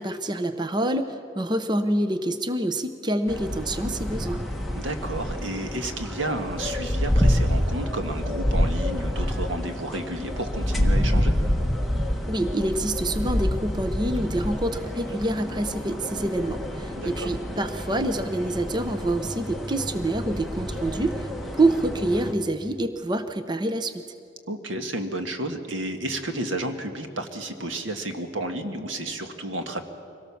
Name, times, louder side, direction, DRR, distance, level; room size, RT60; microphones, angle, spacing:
voice 1, 0.0-4.4 12.3-21.3 21.6-24.0, right 1 dB, 25° right, 9 dB, 0.7 m, -26 dB
sound 1, 3.3-22.3, equal, ahead, 1.3 m, -28 dB
voice 2, 4.7-11.3 17.0-17.3 24.5-29.8, right 1 dB, 85° right, 6 dB, 1.6 m, -31 dB
24.0 x 17.5 x 7.1 m, 2.5 s
head